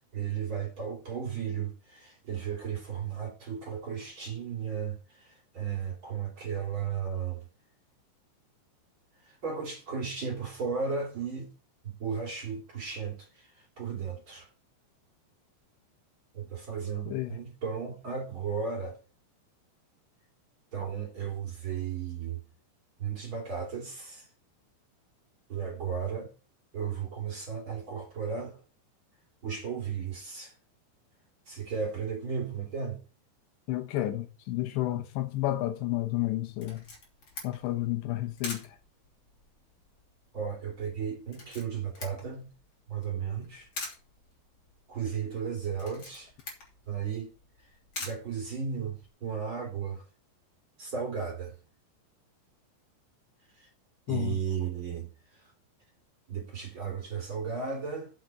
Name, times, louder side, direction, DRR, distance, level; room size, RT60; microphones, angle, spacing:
voice 1, 0.1-7.4 9.2-11.5 11.8-14.5 16.3-19.0 20.7-22.4 23.0-24.3 25.5-26.3 26.7-28.6 29.4-30.5 31.5-33.0 40.3-42.5 42.9-43.7 44.9-46.3 46.9-47.3 48.0-50.0 50.8-51.5 53.5-53.7 54.1-55.5 56.3-58.1, right 6 dB, 35° right, 2.6 m, -35 dB
voice 2, 17.1-17.4 33.7-36.8 37.4-38.7 54.1-54.4, left 15 dB, 75° left, 3.0 m, -31 dB
Camera, 36.6-49.1, left 3 dB, 35° left, 3.2 m, -46 dB
7.3 x 6.0 x 7.5 m
omnidirectional pair, 5.5 m